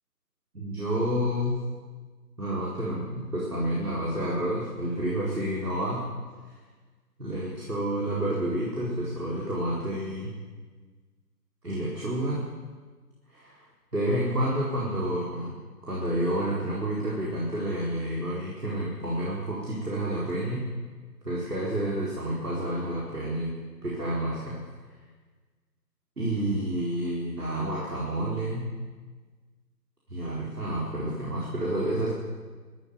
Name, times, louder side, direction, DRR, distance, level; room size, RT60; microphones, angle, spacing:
voice 1, 0.5-1.6 2.4-6.1 7.2-10.3 11.6-12.5 13.3-13.6 13.9-15.6 15.8-20.7 21.2-24.6 26.2-28.8 30.1-32.2, right 1 dB, 65° right, -5 dB, 4.7 m, -29 dB
13.5 x 11.0 x 9.5 m, 1.4 s
figure-of-eight pair, 160°, 50 cm